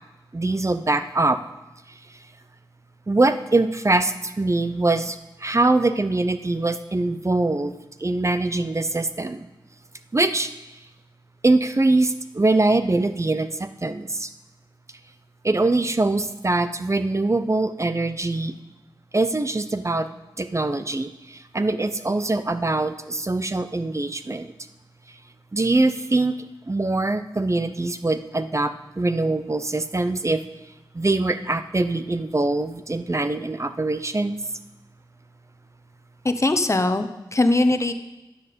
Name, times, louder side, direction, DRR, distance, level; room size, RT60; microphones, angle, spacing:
voice 1, 0.3-1.4 3.1-9.5 10.1-10.5 11.4-14.3 15.4-18.5 19.1-20.1 20.4-24.5 25.5-30.4 30.9-34.4, right 2 dB, 35° right, 10 dB, 0.8 m, -23 dB
voice 2, 36.2-37.9, left 2 dB, 35° left, 8 dB, 1.0 m, -21 dB
10.5 x 10.5 x 6.9 m, 1.0 s
wide cardioid pair, 70°, 8 cm